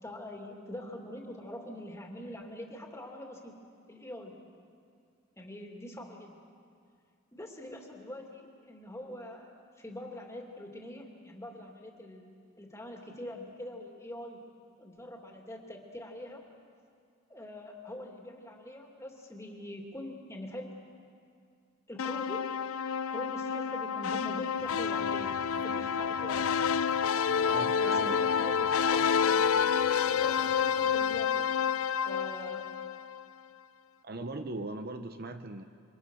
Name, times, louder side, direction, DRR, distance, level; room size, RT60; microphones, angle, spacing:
voice 1, 0.0-3.6 3.9-4.4 5.4-6.4 7.3-12.3 12.6-14.4 14.8-16.5 17.3-20.8 21.9-22.5 23.1-25.4 25.6-26.6 27.8-29.6 30.1-31.6 32.0-32.7, left 1 dB, 15° left, 1 dB, 2.7 m, -44 dB
sound 1, 22.0-33.2, left 7 dB, 75° left, 0.5 m, -29 dB
sound 2, 24.5-31.2, left 1 dB, 45° left, 1.6 m, -52 dB
voice 2, 27.5-28.2 34.0-35.6, right 2 dB, 45° right, 8 dB, 0.9 m, -39 dB
28.0 x 25.0 x 6.4 m, 2.3 s
head